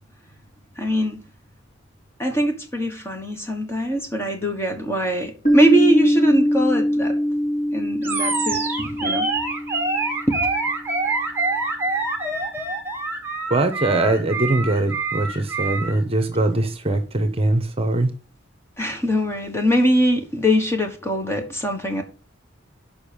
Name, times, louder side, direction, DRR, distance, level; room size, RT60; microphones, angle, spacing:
voice 1, 0.8-1.3 2.2-7.1 7.7-9.3 10.3-10.4 16.3-16.4 18.8-22.0, equal, 15° left, 1.3 m, -22 dB
Piano, 5.5-10.8, equal, 40° left, 3.6 m, -22 dB
Animal, 8.0-16.0, right 3 dB, 10° right, 1.6 m, -26 dB
voice 2, 13.5-18.1, right 2 dB, 30° right, 1.1 m, -21 dB
7.0 x 5.5 x 6.9 m
head